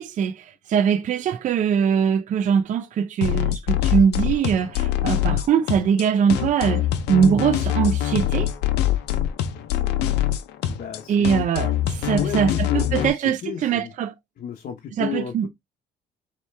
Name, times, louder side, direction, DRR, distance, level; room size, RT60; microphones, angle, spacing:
voice 1, 0.0-8.5 11.1-12.5 12.7-14.1 15.0-15.5, right 7 dB, 50° right, 0.6 m, -22 dB
sound 1, 3.2-13.1, left 12 dB, 85° left, 0.7 m, -24 dB
voice 2, 10.6-11.4 11.9-13.9 14.4-15.5, left 9 dB, 55° left, 0.9 m, -33 dB
4.3 x 3.0 x 3.3 m
cardioid pair, 110°, 17 cm